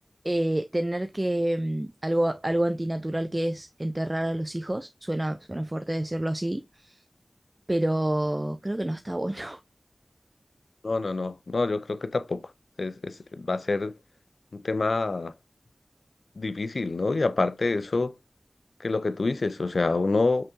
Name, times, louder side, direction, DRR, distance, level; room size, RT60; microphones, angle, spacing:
voice 1, 0.2-7.0 7.7-9.6, right 1 dB, 25° right, 0.4 m, -28 dB
voice 2, 10.8-12.4 12.8-13.9 14.5-15.3 16.4-18.1 18.8-20.5, left 3 dB, 85° left, 0.3 m, -27 dB
5.5 x 3.5 x 2.6 m
wide cardioid pair, 45°, 0 cm